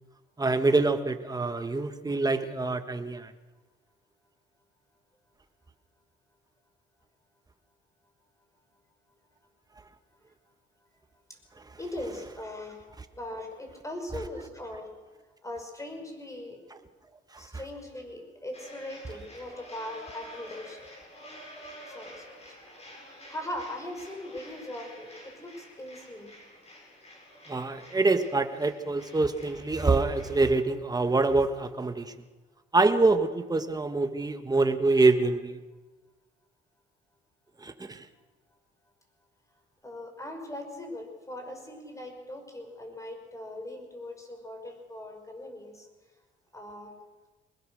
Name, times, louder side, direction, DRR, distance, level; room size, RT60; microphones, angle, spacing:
voice 1, 0.4-3.3 11.6-11.7 17.3-17.5 27.5-32.1 32.7-35.6 37.6-38.1, right 3 dB, 20° right, 8 dB, 1.6 m, -25 dB
voice 2, 11.8-12.9 13.1-14.9 15.4-16.7 17.4-20.9 21.9-22.5 23.3-26.3 39.8-45.9 46.5-46.9, left 1 dB, 15° left, 4 dB, 6.0 m, -40 dB
sound 1, 18.5-30.5, equal, 35° left, 8.0 m, -49 dB
23.0 x 20.5 x 6.6 m, 1.2 s
cardioid pair, 90°, 20 cm